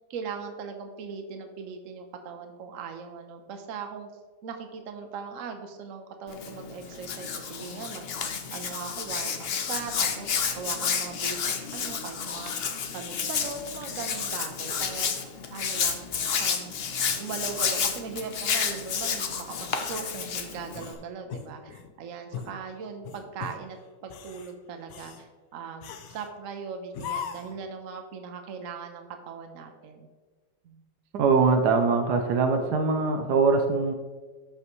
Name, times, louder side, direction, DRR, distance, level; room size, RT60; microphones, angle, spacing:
voice 1, 0.1-4.1 4.4-8.1 8.5-12.5 12.9-16.1 16.4-16.7 17.1-23.8 24.0-30.1 30.6-30.8, right 5 dB, 55° right, 5 dB, 1.1 m, -39 dB
Hands, 6.3-20.9, left 6 dB, 55° left, 0.7 m, -31 dB
sound 1, 20.7-21.9 22.3-22.6 23.0-23.6 24.0-24.5 24.9-25.2 25.8-26.3 26.9-27.6, left 7 dB, 75° left, 1.3 m, -38 dB
voice 2, 31.1-33.9, right 4 dB, 70° right, 5 dB, 1.3 m, -22 dB
13.0 x 5.6 x 3.1 m, 1.3 s
omnidirectional pair, 1.9 m